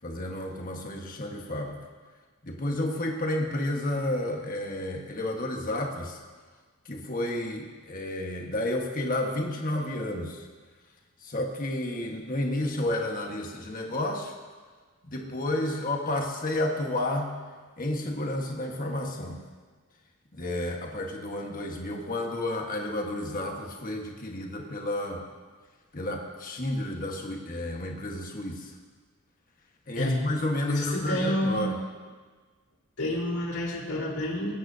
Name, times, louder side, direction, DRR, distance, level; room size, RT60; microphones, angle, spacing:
voice 1, 0.0-1.8 2.4-6.2 6.8-10.5 11.2-14.4 15.0-17.4 17.8-19.4 20.3-25.3 25.9-28.7 29.9-31.7, left 1 dB, 40° left, 1 dB, 1.5 m, -31 dB
voice 2, 29.9-30.3 30.7-31.7 33.0-34.6, left 1 dB, 90° left, -5 dB, 4.1 m, -29 dB
24.0 x 9.4 x 2.8 m, 1.4 s
head